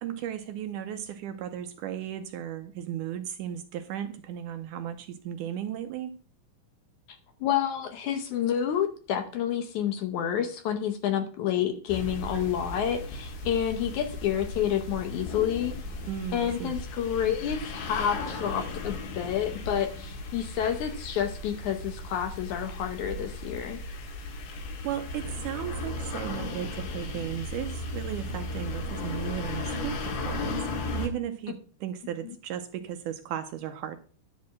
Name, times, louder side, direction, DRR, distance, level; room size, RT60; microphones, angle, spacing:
voice 1, 0.0-6.1 16.1-16.7 24.8-34.0, right 10 dB, 80° right, 8 dB, 1.9 m, -35 dB
voice 2, 7.4-15.7 16.3-23.8, left 9 dB, 70° left, 7 dB, 2.0 m, -29 dB
sound 1, 11.9-31.1, left 2 dB, 90° left, 3.3 m, -36 dB
10.5 x 4.2 x 7.4 m, 0.43 s
omnidirectional pair, 4.0 m